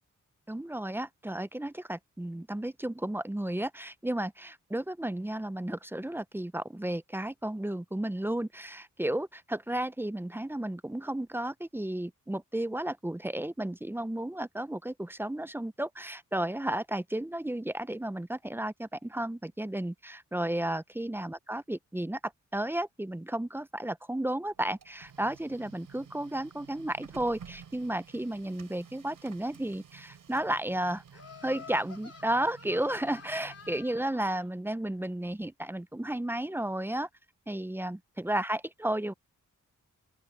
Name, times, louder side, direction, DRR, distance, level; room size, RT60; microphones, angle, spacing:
voice 1, 0.5-22.2 22.5-31.0 31.4-37.1 37.5-39.1, right 1 dB, 5° right, 0.5 m, -33 dB
Printer, 24.5-34.3, right 7 dB, 85° right, 3.5 m, -53 dB
Laughter, 31.1-34.4, left 6 dB, 50° left, 3.6 m, -49 dB
open air
wide cardioid pair, 120°, 31 cm